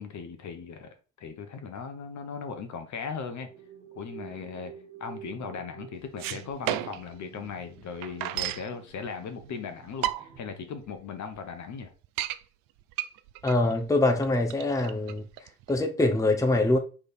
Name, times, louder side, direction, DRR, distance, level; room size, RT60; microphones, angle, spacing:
voice 1, 0.0-3.5 3.9-4.7 5.0-11.9, left 5 dB, 50° left, 1.0 m, -38 dB
Night drive - synth mood atmo, 3.4-10.8, right 7 dB, 85° right, 1.5 m, -49 dB
sound 1, 6.0-7.1 7.5-7.6 7.8-8.7 9.4-9.5 9.9-10.5 11.0-11.1 11.3-11.4 11.8-12.4 12.9-15.8, right 13 dB, 60° right, 0.5 m, -32 dB
voice 2, 13.4-15.2 15.7-16.8, left 2 dB, 10° left, 0.8 m, -24 dB
3.5 x 3.3 x 4.2 m
hypercardioid pair, 55°, 38 cm